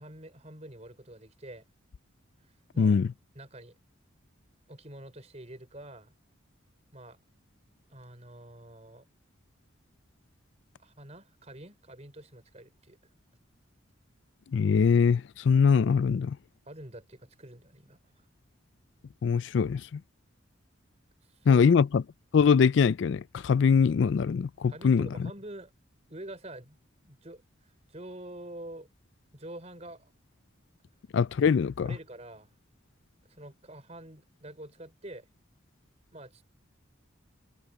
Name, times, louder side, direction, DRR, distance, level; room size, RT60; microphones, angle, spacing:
voice 1, 0.0-1.7 2.4-3.0 3.3-3.8 4.7-6.1 6.9-7.2 7.9-9.0 10.8-13.0 16.6-18.3 21.2-21.7 24.7-25.7 26.1-27.4 27.9-28.9 29.3-30.1 31.8-32.5 33.3-35.3 36.1-36.4, right 1 dB, 30° right, 5.0 m, -46 dB
voice 2, 2.8-3.1 14.5-16.4 19.2-20.0 21.5-22.0 22.3-25.1 31.1-31.9, left 6 dB, 65° left, 0.3 m, -23 dB
head